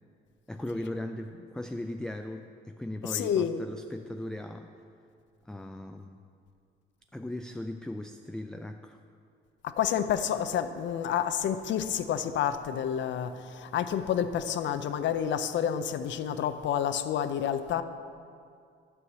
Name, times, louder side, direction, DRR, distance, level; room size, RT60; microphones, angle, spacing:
voice 1, 0.5-4.7 5.5-6.2 7.1-9.0, left 1 dB, 5° left, 6 dB, 0.3 m, -38 dB
voice 2, 3.0-3.6 9.6-17.8, left 9 dB, 70° left, 11 dB, 0.5 m, -29 dB
9.7 x 4.6 x 7.3 m, 2.3 s
cardioid pair, 90°, 20 cm